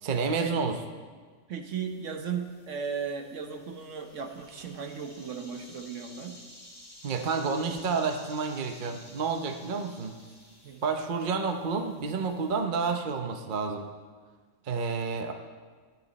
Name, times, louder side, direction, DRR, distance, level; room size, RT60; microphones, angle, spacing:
voice 1, 0.0-0.8 7.0-10.2 10.8-13.9 14.7-15.3, right 5 dB, 45° right, 5 dB, 0.8 m, -30 dB
voice 2, 1.5-6.4 10.6-10.8, right 6 dB, 60° right, 5 dB, 1.2 m, -36 dB
sound 1, 1.7-12.6, left 1 dB, 15° left, 3.0 m, -53 dB
14.5 x 10.5 x 4.1 m, 1.5 s
omnidirectional pair, 1.5 m